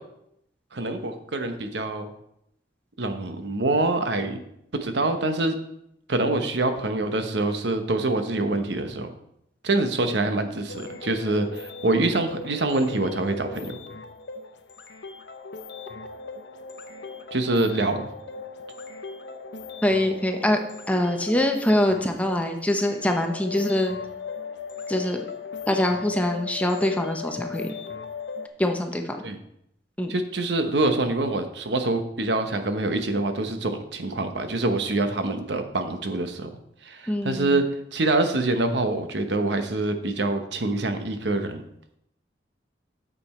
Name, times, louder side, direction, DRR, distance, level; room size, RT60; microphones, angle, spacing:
voice 1, 0.7-2.1 3.0-4.4 4.8-5.5 6.1-9.1 9.6-13.7 17.3-18.1 29.2-29.4 30.1-36.5 36.8-37.6 37.9-41.6, right 2 dB, 75° right, 7 dB, 0.9 m, -25 dB
sound 1, 10.7-28.5, left 4 dB, 80° left, 0.8 m, -38 dB
voice 2, 19.8-20.6 20.9-24.0 24.9-25.2 25.7-27.7 28.6-29.2 30.0-30.1 37.1-37.6, left 1 dB, 10° left, 4 dB, 0.8 m, -24 dB
8.7 x 6.9 x 4.3 m, 0.77 s
head